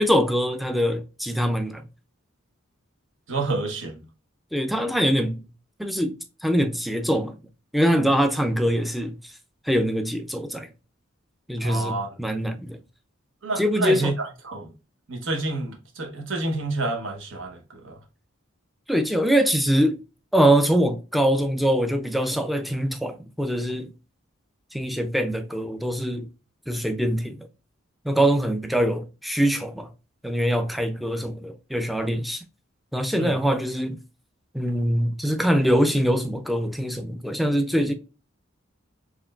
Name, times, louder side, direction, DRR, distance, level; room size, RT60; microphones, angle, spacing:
voice 1, 0.0-1.8 4.5-5.4 5.8-6.2 6.4-7.3 7.7-9.2 9.7-10.7 11.5-12.8 13.6-14.1 18.9-20.0 20.3-23.9 24.7-26.3 26.7-27.5 28.0-29.9 30.2-32.4 32.9-34.0 34.5-37.9, equal, ahead, 0.3 m, -23 dB
voice 2, 3.3-4.0 11.6-12.1 13.4-14.7 15.1-17.9 33.2-33.3, right 2 dB, 65° right, 1.0 m, -29 dB
4.3 x 3.1 x 2.4 m
head